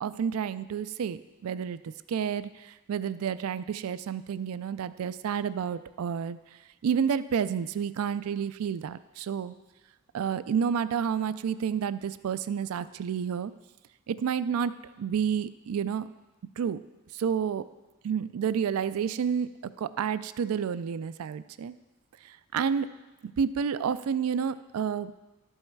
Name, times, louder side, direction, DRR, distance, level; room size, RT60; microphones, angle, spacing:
voice 1, 0.0-1.8 2.1-2.5 2.9-6.4 6.8-9.5 10.1-13.5 14.1-14.7 15.0-16.0 16.6-16.8 17.2-17.6 18.0-19.5 19.8-21.7 22.5-22.9 23.4-25.1, right 7 dB, 85° right, 15 dB, 0.4 m, -29 dB
12.0 x 5.5 x 4.6 m, 1.1 s
head